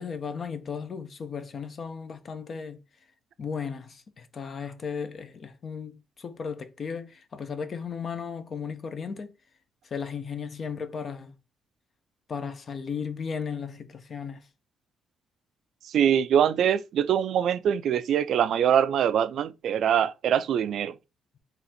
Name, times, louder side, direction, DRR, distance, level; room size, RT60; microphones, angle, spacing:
voice 1, 0.0-2.8 3.4-9.3 9.9-11.3 12.3-14.4, left 6 dB, 45° left, 0.7 m, -35 dB
voice 2, 15.9-20.9, right 9 dB, 70° right, 0.3 m, -23 dB
3.9 x 2.5 x 4.1 m
cardioid pair, 90°, 0 cm